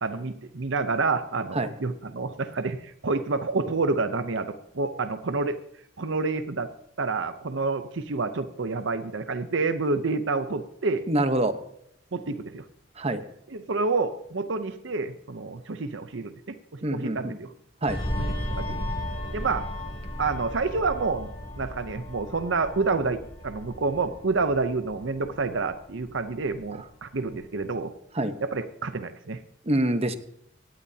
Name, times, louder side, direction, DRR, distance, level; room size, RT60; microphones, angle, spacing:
voice 1, 0.0-5.6 6.0-6.7 7.0-11.0 12.1-12.6 13.5-17.5 18.2-18.8 19.3-19.7 20.2-21.3 21.6-27.9 28.4-29.4, right 3 dB, 70° right, 10 dB, 0.8 m, -28 dB
voice 2, 11.1-11.6 13.0-13.2 16.8-17.4 17.8-18.0 28.1-28.3 29.7-30.1, right 1 dB, 30° right, 9 dB, 1.0 m, -25 dB
sound 1, 17.9-26.9 27.2-27.5, left 1 dB, 25° left, 3.0 m, -35 dB
17.5 x 17.0 x 2.8 m, 0.74 s
head